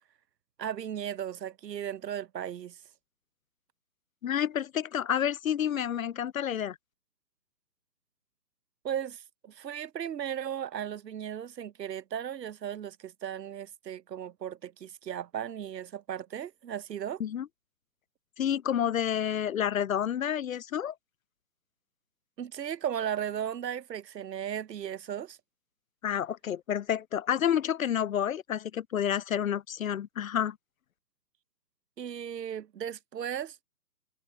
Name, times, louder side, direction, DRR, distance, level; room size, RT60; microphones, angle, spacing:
voice 1, 0.6-2.8 8.8-17.2 22.4-25.4 32.0-33.6, right 9 dB, 80° right, 0.8 m, -36 dB
voice 2, 4.2-6.8 17.2-17.5 18.4-20.9 26.0-30.6, left 9 dB, 60° left, 0.5 m, -29 dB
hypercardioid pair, 160°, 48 cm